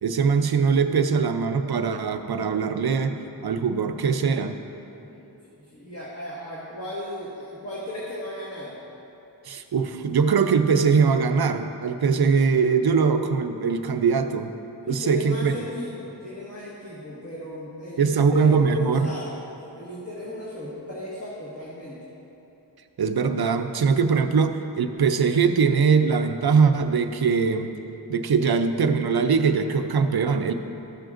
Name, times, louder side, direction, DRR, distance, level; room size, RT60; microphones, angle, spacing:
voice 1, 0.0-4.6 9.5-14.5 14.9-15.5 18.0-19.1 23.0-27.7 28.1-30.5, right 5 dB, 60° right, 8 dB, 0.5 m, -22 dB
voice 2, 5.1-8.8 14.9-19.4 19.8-22.0, left 1 dB, 35° left, -8 dB, 1.5 m, -35 dB
13.5 x 7.7 x 2.5 m, 3.0 s
wide cardioid pair, 75°, 42 cm